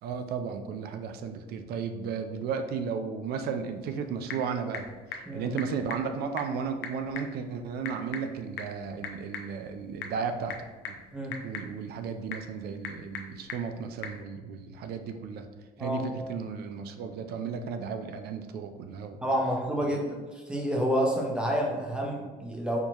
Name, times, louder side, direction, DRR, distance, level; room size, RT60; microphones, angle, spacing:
voice 1, 0.0-10.6 10.9-11.0 11.4-15.5 15.8-19.2 19.8-20.0, right 6 dB, 70° right, 7 dB, 0.4 m, -34 dB
Typing / Telephone, 3.7-14.2, left 6 dB, 75° left, 0.5 m, -43 dB
voice 2, 19.2-20.2 20.5-22.8, equal, 5° right, -1 dB, 0.7 m, -28 dB
4.5 x 2.3 x 2.9 m, 1.3 s
cardioid pair, 110°, 17 cm